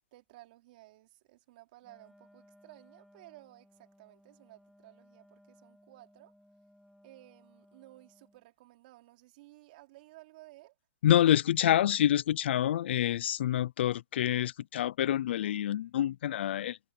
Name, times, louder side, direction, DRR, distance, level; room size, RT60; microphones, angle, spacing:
voice 1, 0.0-6.3 7.0-10.7, right 18 dB, 40° right, 3.8 m, -56 dB
Wind instrument woodwind instrument, 1.8-8.5, equal, ahead, 2.9 m, -62 dB
voice 2, 11.0-16.8, left 11 dB, 60° left, 0.5 m, -27 dB
hypercardioid pair, 160°, 7 cm